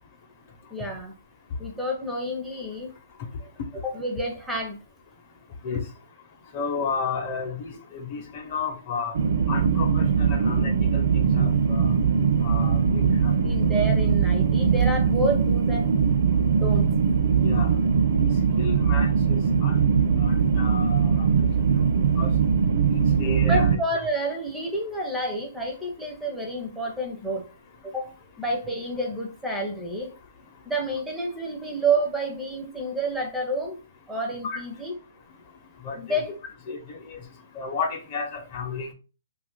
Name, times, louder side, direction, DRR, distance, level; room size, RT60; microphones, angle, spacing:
voice 1, 0.7-1.2 1.6-3.0 3.8-4.8 13.2-15.9 16.5-17.0 23.5-27.5 27.8-28.1 28.4-30.1 30.7-33.8 34.1-35.0 36.0-36.3, right 1 dB, 5° right, 0.5 m, -29 dB
voice 2, 6.5-9.1 9.5-11.9 12.4-13.1 17.4-17.7 18.6-19.8 20.2-21.1 22.2-22.3 22.9-23.8 34.4-34.6 35.8-36.0 36.7-37.2 37.6-38.9, left 5 dB, 40° left, 0.7 m, -32 dB
sound 1, 9.1-23.8, right 6 dB, 65° right, 0.4 m, -21 dB
2.8 x 2.4 x 3.7 m
hypercardioid pair, 155°, 0 cm